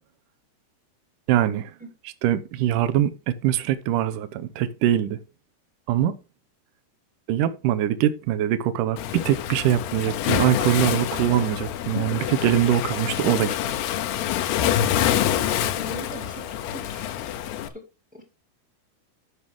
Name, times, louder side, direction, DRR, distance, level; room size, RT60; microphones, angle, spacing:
voice 1, 1.3-1.7 2.2-5.2 5.9-6.1 7.3-13.6, right 11 dB, 75° right, 2.0 m, -23 dB
Waves surf, 9.0-17.7, left 11 dB, 80° left, 2.8 m, -26 dB
voice 2, 15.3-17.1 17.7-17.8 18.1-18.2, right 1 dB, 5° right, 0.9 m, -41 dB
13.0 x 6.1 x 3.6 m
omnidirectional pair, 4.8 m